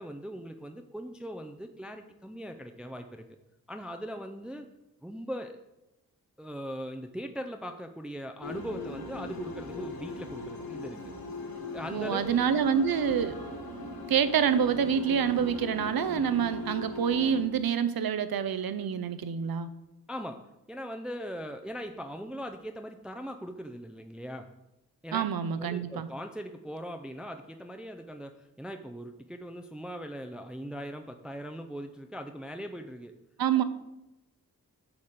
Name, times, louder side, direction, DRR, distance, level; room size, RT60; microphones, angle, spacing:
voice 1, 0.0-3.2 3.7-4.7 5.0-5.6 6.4-11.1 11.7-12.4 12.7-12.8 20.1-20.4 20.7-24.5 25.0-25.2 25.6-33.1, equal, ahead, 5 dB, 0.5 m, -40 dB
sound 1, 8.4-17.4, left 2 dB, 70° left, 1.3 m, -39 dB
voice 2, 11.9-13.4 14.1-19.7 25.1-26.1 33.4-33.6, right 7 dB, 70° right, 12 dB, 0.7 m, -27 dB
8.7 x 3.6 x 6.5 m, 0.92 s
cardioid pair, 55°, 37 cm